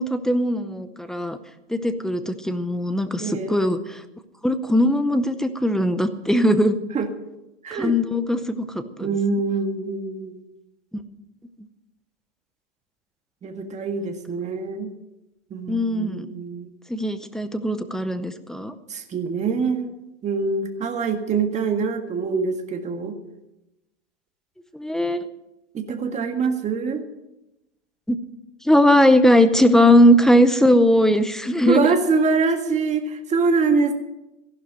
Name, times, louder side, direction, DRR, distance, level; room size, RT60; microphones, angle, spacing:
voice 1, 0.0-1.4 1.7-4.0 4.4-6.8 7.7-9.1 14.0-14.1 15.7-16.3 16.9-18.7 24.7-25.3 28.1-28.2 28.6-31.9, equal, ahead, 11 dB, 0.7 m, -19 dB
voice 2, 3.2-3.6 6.9-7.1 7.6-7.9 9.0-10.4 13.4-14.9 15.5-16.7 18.9-19.9 20.2-23.1 25.7-27.1 31.7-33.9, right 4 dB, 20° right, 5 dB, 1.7 m, -24 dB
15.0 x 11.5 x 6.1 m, 0.94 s
hypercardioid pair, 130°, 36 cm